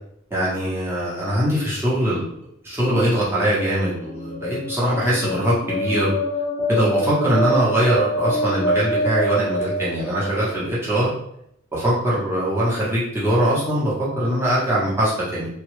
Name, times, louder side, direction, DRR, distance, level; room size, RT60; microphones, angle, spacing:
voice 1, 0.3-2.3 2.6-6.1 6.7-11.1 11.7-15.5, right 1 dB, 10° right, -9 dB, 1.0 m, -22 dB
sound 1, 3.9-10.6, equal, 35° left, 0.3 m, -25 dB
2.9 x 2.4 x 3.1 m, 0.74 s
head